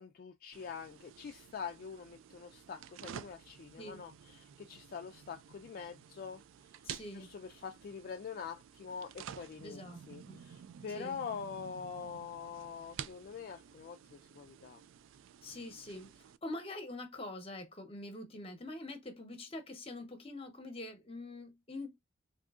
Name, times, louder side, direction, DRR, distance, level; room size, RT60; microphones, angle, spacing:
voice 1, 0.0-6.4 7.1-9.8 10.1-14.8, left 6 dB, 50° left, 0.3 m, -44 dB
sound 1, 0.5-16.4, right 9 dB, 90° right, 0.3 m, -51 dB
voice 2, 6.8-7.3 9.6-10.0 10.3-10.4 10.9-11.1 15.4-16.1 16.4-22.0, left 2 dB, 30° left, 0.9 m, -44 dB
3.6 x 2.7 x 2.4 m
head